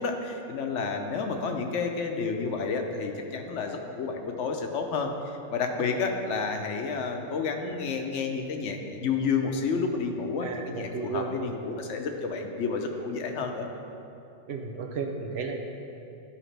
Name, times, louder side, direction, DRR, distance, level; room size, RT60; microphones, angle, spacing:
voice 1, 0.0-5.1 5.5-13.7, left 5 dB, 80° left, 4 dB, 1.0 m, -30 dB
voice 2, 10.4-11.6 14.5-15.6, right 4 dB, 65° right, 4 dB, 0.9 m, -33 dB
11.5 x 5.0 x 3.3 m, 2.8 s
omnidirectional pair, 1.2 m